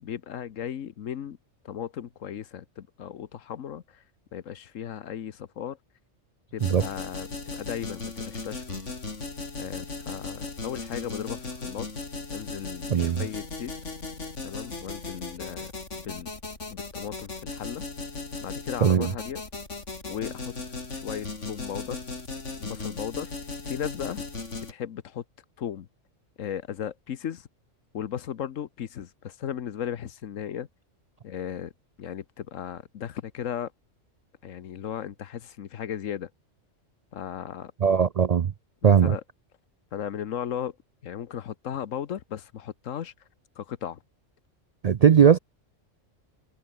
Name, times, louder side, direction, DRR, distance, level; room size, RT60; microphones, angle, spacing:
voice 1, 0.0-1.4 1.6-4.0 4.3-5.8 6.5-8.6 9.6-11.9 12.3-13.7 14.4-16.3 16.7-17.8 18.4-19.4 20.1-20.6 20.9-22.0 22.6-23.3 23.6-24.2 24.6-25.2 25.6-25.9 26.4-27.5 27.9-30.7 31.2-31.7 32.0-33.7 34.4-36.3 37.1-37.7 38.8-39.2 39.9-40.8 41.0-43.1 43.6-44.0, left 9 dB, 80° left, 1.3 m, -36 dB
sound 1, 6.6-24.7, left 3 dB, 65° left, 3.5 m, -37 dB
voice 2, 12.9-13.2 18.8-19.1 37.8-38.5 38.8-39.1 44.8-45.4, right 7 dB, 75° right, 0.3 m, -19 dB
omnidirectional pair, 1.3 m